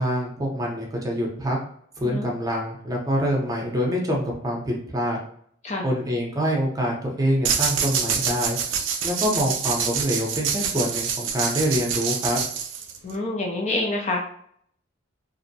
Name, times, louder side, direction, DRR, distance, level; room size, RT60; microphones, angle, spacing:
voice 1, 0.0-1.6 2.0-5.2 5.8-8.6 9.0-12.4, equal, 20° right, -2 dB, 0.6 m, -25 dB
sound 1, 7.4-13.1, right 7 dB, 80° right, 0.4 m, -26 dB
voice 2, 13.0-14.2, left 2 dB, 35° left, 1 dB, 0.4 m, -27 dB
2.5 x 2.0 x 2.6 m, 0.64 s
head